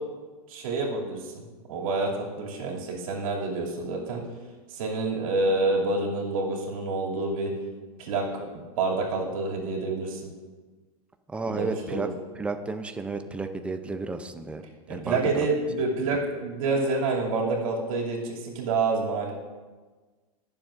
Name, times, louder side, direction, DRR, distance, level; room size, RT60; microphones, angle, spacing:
voice 1, 0.5-1.4 1.7-4.2 4.7-7.5 8.0-8.4 8.8-10.2 11.5-12.1 14.9-19.3, right 3 dB, 65° right, -2 dB, 2.6 m, -28 dB
voice 2, 11.3-12.1 12.3-14.6 14.9-15.3, right 3 dB, 5° right, 7 dB, 0.5 m, -32 dB
19.5 x 7.2 x 2.5 m, 1.3 s
supercardioid pair, 140°, 19 cm